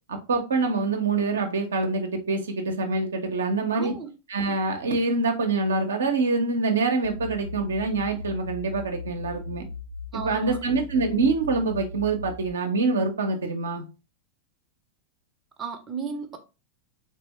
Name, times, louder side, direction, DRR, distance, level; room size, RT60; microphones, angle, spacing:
voice 1, 0.1-3.9 4.3-9.7 10.1-13.8, right 3 dB, 70° right, 0.7 m, -25 dB
voice 2, 3.7-4.1 10.1-10.6 15.6-16.4, right 5 dB, 20° right, 0.7 m, -34 dB
sound 1, 7.0-12.5, left 4 dB, 60° left, 0.6 m, -38 dB
3.4 x 3.4 x 3.0 m
figure-of-eight pair, 90°, 0 cm